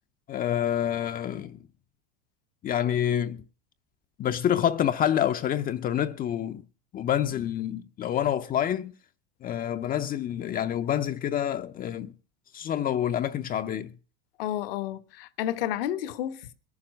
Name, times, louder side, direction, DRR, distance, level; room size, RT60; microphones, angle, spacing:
voice 1, 0.3-1.6 2.6-3.4 4.2-6.6 6.9-8.9 9.4-12.1 12.5-13.9, left 10 dB, 30° left, 0.6 m, -27 dB
voice 2, 14.4-16.5, left 12 dB, 75° left, 1.3 m, -31 dB
21.5 x 7.1 x 6.2 m
supercardioid pair, 120°, 29 cm